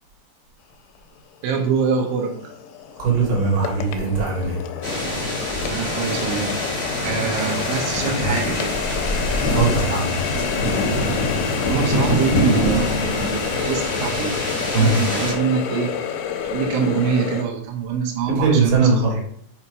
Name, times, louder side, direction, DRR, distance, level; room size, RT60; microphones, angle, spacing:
Water tap faucet, 1.0-1.1 1.6-17.4, left 8 dB, 90° left, 2.9 m, -29 dB
voice 1, 1.4-2.3 5.7-6.6 7.0-8.7 11.6-14.3 14.7-15.9 16.5-19.3, right 6 dB, 85° right, 0 dB, 3.5 m, -24 dB
voice 2, 3.0-4.6 9.5-10.1 14.7-15.0 18.4-19.1, right 4 dB, 65° right, -3 dB, 3.6 m, -19 dB
sound 1, 4.8-15.3, left 1 dB, 25° left, 0.8 m, -24 dB
8.2 x 2.9 x 4.8 m, 0.64 s
omnidirectional pair, 5.1 m